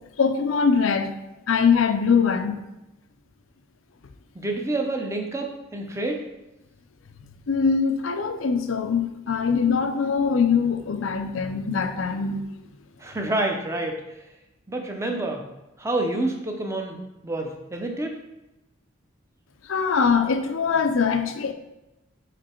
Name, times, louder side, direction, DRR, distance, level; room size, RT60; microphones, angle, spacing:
voice 1, 0.2-1.1 1.5-2.6 7.5-12.5 19.7-21.5, left 5 dB, 80° left, 0.5 m, -22 dB
voice 2, 4.3-6.3 13.0-14.2 14.7-15.5 15.8-18.2, right 2 dB, 15° right, 0.7 m, -28 dB
5.0 x 4.6 x 4.4 m
head